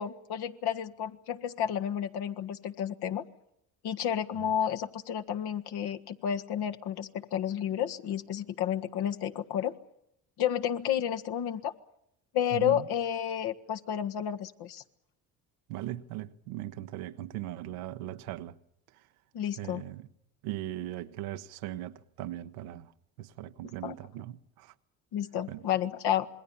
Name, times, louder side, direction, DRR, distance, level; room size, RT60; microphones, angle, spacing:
voice 1, 0.0-3.2 3.8-9.7 10.4-11.7 12.3-14.8 19.3-19.8 23.8-23.9 25.1-26.3, left 10 dB, 65° left, 1.7 m, -31 dB
voice 2, 12.5-12.8 15.7-18.6 19.6-20.1 20.4-22.9 23.2-24.7 25.5-25.6, right 14 dB, 85° right, 1.1 m, -39 dB
27.0 x 21.0 x 7.1 m
supercardioid pair, 70°, 41 cm